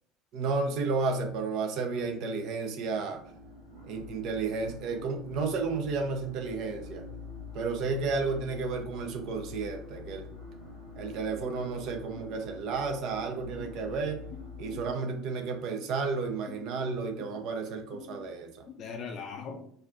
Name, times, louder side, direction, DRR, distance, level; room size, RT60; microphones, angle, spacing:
voice 1, 0.3-3.2 3.8-7.0 7.5-10.3 11.0-14.2 14.6-18.7, right 4 dB, 55° right, 5 dB, 0.6 m, -32 dB
Male Vocal Drone, 2.9-14.8, left 3 dB, 75° right, 1.1 m, -46 dB
voice 2, 13.6-14.0 14.3-15.2 15.8-15.9 16.5-16.9 17.2-17.4 17.9-18.4 18.7-19.6, left 6 dB, 45° left, 4 dB, 0.5 m, -43 dB
4.2 x 2.5 x 2.5 m, 0.63 s
figure-of-eight pair, 65°, 0 cm